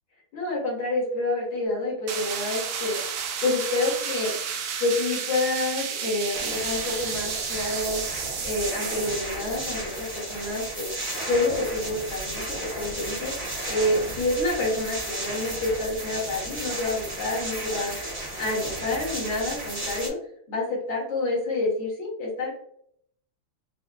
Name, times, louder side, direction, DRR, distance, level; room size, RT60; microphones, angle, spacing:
voice 1, 0.3-3.0 3.4-4.3 4.8-8.0 8.4-10.9 11.3-13.3 13.7-17.9 18.4-20.2 20.5-22.5, left 2 dB, 65° left, -4 dB, 2.1 m, -28 dB
sound 1, 2.1-9.3, right 7 dB, 85° right, 1.5 m, -32 dB
sound 2, 6.3-20.1, right 1 dB, 35° right, 0.6 m, -34 dB
5.2 x 2.3 x 2.2 m, 0.67 s
omnidirectional pair, 2.4 m